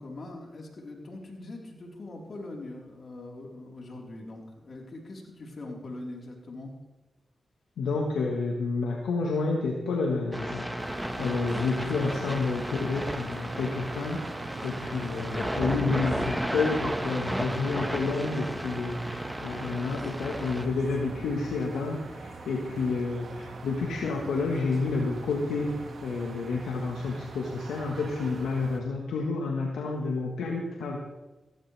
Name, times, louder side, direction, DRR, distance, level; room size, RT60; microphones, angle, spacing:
voice 1, 0.0-6.7, left 2 dB, 60° left, -1 dB, 4.3 m, -42 dB
voice 2, 7.8-31.0, left 3 dB, 85° left, 0 dB, 1.5 m, -30 dB
sound 1, 10.3-20.6, equal, 5° right, 1.6 m, -34 dB
sound 2, 10.8-28.8, right 3 dB, 70° right, 2.0 m, -42 dB
16.0 x 15.5 x 3.5 m, 1.1 s
supercardioid pair, 40°, 0 cm